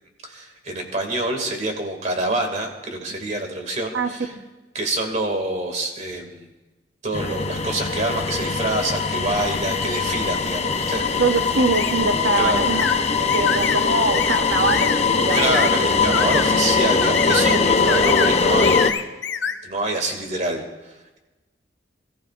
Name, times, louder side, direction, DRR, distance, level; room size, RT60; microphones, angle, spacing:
voice 1, 0.2-4.3 4.7-6.5 7.0-11.2 12.4-12.7 15.3-18.8 19.6-21.2, right 2 dB, 40° right, 3 dB, 2.2 m, -26 dB
sound 1, 7.1-18.9, left 4 dB, 35° left, 0.8 m, -21 dB
voice 2, 11.2-12.8 13.3-15.6, right 3 dB, 85° right, 6 dB, 1.0 m, -23 dB
sound 2, 11.7-12.0 12.8-13.0 13.3-13.8 14.1-14.4 14.7-15.0 15.3-15.7 16.1-16.5 17.0-17.6 17.9-18.3 18.6-19.6, left 6 dB, 80° left, 0.8 m, -25 dB
26.5 x 14.5 x 2.5 m, 1.1 s
head